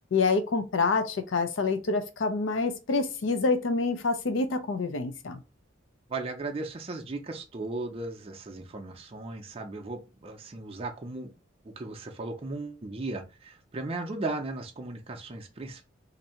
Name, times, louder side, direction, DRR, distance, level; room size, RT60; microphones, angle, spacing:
voice 1, 0.1-5.4, left 4 dB, 70° left, 0.5 m, -27 dB
voice 2, 6.1-11.3 11.6-15.8, right 2 dB, 30° right, 0.5 m, -36 dB
2.7 x 2.6 x 4.2 m
head